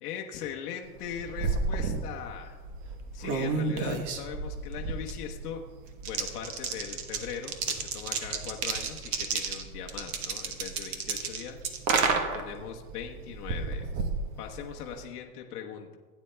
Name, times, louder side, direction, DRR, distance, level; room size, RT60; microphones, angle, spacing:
voice 1, 0.0-2.6 3.1-5.6 6.0-11.6 12.3-13.9 14.4-16.0, left 8 dB, 85° left, 1 dB, 1.2 m, -40 dB
sound 1, 0.9-15.0, right 4 dB, 40° right, 1.1 m, -32 dB
16.5 x 9.2 x 2.2 m, 1.5 s
supercardioid pair, 130°, 45 cm